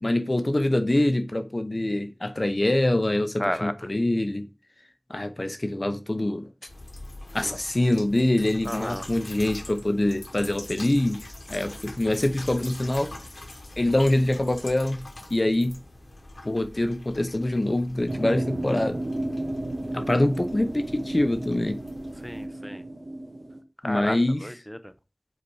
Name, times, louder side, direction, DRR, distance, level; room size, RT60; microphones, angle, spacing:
voice 1, 0.0-4.5 5.1-6.5 7.3-13.1 13.8-15.0 15.3-15.8 16.4-19.0 19.9-21.8 23.8-24.4, left 1 dB, 45° left, 0.7 m, -24 dB
voice 2, 3.4-3.9 8.6-9.1 11.7-11.8 22.2-22.8 23.8-24.9, equal, 5° left, 0.7 m, -32 dB
sound 1, 6.7-22.5, left 1 dB, 75° left, 1.2 m, -44 dB
sound 2, 18.1-23.6, right 1 dB, 70° right, 1.0 m, -33 dB
5.2 x 4.1 x 4.8 m
wide cardioid pair, 45°, 0 cm